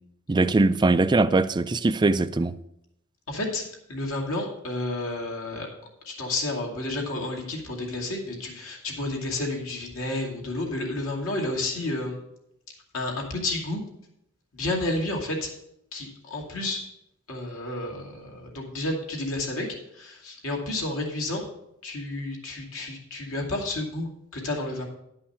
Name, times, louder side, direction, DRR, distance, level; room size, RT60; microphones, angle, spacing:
voice 1, 0.3-2.5, right 3 dB, 20° right, 0.3 m, -21 dB
voice 2, 3.3-5.7 6.0-12.2 12.9-13.8 14.5-15.5 15.9-16.8 17.3-19.7 19.9-21.4 21.8-24.8, left 2 dB, 65° left, 2.5 m, -31 dB
11.0 x 5.6 x 5.7 m
head